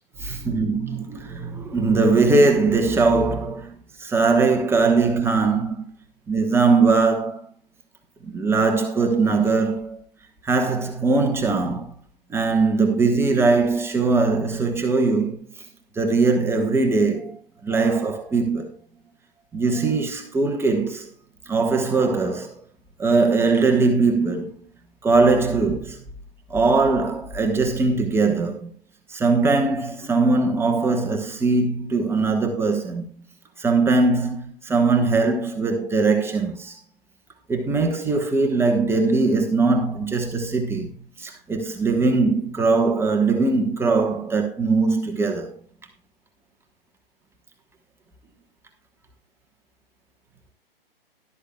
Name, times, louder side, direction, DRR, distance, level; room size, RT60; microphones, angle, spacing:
voice 1, 0.2-3.7 4.0-5.8 6.3-7.5 8.2-10.0 10.4-11.9 12.3-15.4 16.0-17.4 17.6-18.7 19.5-21.1 21.5-22.5 23.0-24.6 25.0-26.0 26.5-28.7 29.1-33.0 33.6-36.8 37.5-40.9 41.2-45.5, right 3 dB, 10° right, 1.2 m, -21 dB
13.0 x 12.0 x 2.3 m
figure-of-eight pair, 125°, 30 cm